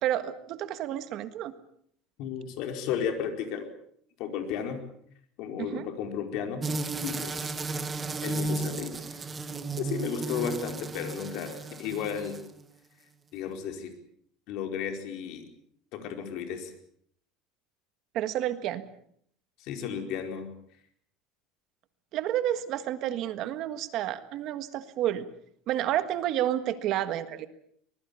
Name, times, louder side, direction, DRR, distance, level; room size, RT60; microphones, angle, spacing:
voice 1, 0.0-1.5 5.6-5.9 18.1-18.9 22.1-25.2 25.7-27.5, right 12 dB, 45° right, 11 dB, 1.6 m, -30 dB
voice 2, 2.2-3.7 4.2-4.8 5.4-6.6 7.0-7.5 8.2-9.2 9.8-12.4 13.3-13.9 14.5-15.4 15.9-16.7 19.6-20.5, left 7 dB, 55° left, 5 dB, 4.6 m, -34 dB
sound 1, 6.6-12.6, right 3 dB, 15° right, 1.2 m, -34 dB
24.5 x 20.5 x 7.1 m, 0.65 s
cardioid pair, 160°, 0 cm